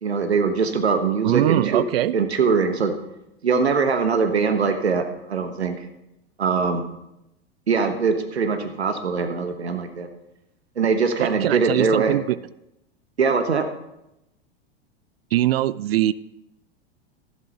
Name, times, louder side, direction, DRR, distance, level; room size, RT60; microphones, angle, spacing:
voice 1, 0.0-1.8 2.1-2.9 3.4-5.8 6.4-6.8 7.7-10.1 10.8-12.1 13.2-13.6, right 5 dB, 90° right, 7 dB, 1.1 m, -22 dB
voice 2, 1.2-2.1 11.2-12.4 15.3-16.1, right 14 dB, 70° right, 19 dB, 0.5 m, -22 dB
14.5 x 12.0 x 2.9 m, 0.87 s
hypercardioid pair, 95°, 31 cm